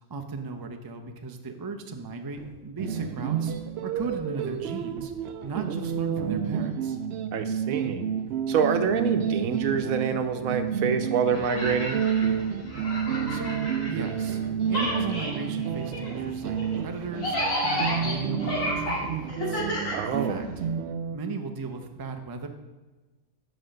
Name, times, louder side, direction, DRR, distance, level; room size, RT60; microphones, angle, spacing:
voice 1, 0.1-3.5 3.8-5.1 5.4-7.0 13.3-14.4 14.7-17.4 17.6-19.6 20.1-20.5 21.1-22.5, right 3 dB, 25° right, 5 dB, 0.4 m, -36 dB
Hammer, 2.3-2.6 2.9-6.5 8.2-15.2 15.7-17.7, right 5 dB, 45° right, 1.3 m, -47 dB
sound 1, 2.8-21.2, right 7 dB, 65° right, 0.7 m, -30 dB
voice 2, 7.3-8.0 8.5-12.0 19.9-20.4, right 6 dB, 85° right, 8 dB, 1.2 m, -26 dB
sound 2, 11.3-14.4 14.6-20.6, equal, 75° left, 2.3 m, -32 dB
8.0 x 5.1 x 6.4 m, 1.2 s
omnidirectional pair, 1.4 m